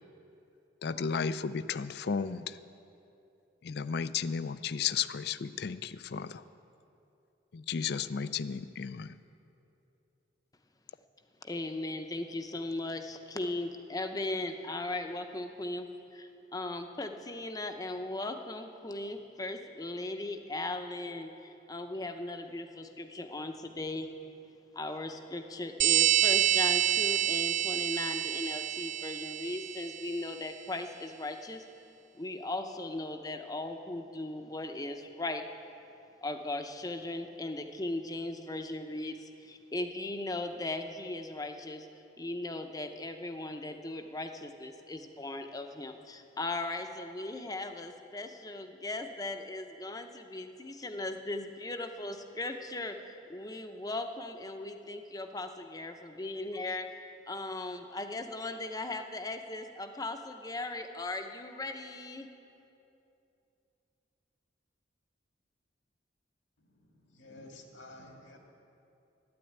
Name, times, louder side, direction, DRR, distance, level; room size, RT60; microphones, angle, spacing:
voice 1, 0.8-2.6 3.6-6.4 7.5-9.2, left 6 dB, 60° left, 15 dB, 0.4 m, -34 dB
voice 2, 11.4-24.1 24.7-31.6 32.1-35.5 36.2-41.9 42.2-62.3, left 2 dB, 20° left, 6 dB, 0.7 m, -38 dB
sound 1, 25.8-30.1, right 12 dB, 40° right, 0.4 m, -27 dB
voice 3, 66.6-68.4, left 1 dB, 85° left, 1 dB, 2.1 m, -52 dB
12.0 x 9.9 x 8.8 m, 2.8 s
head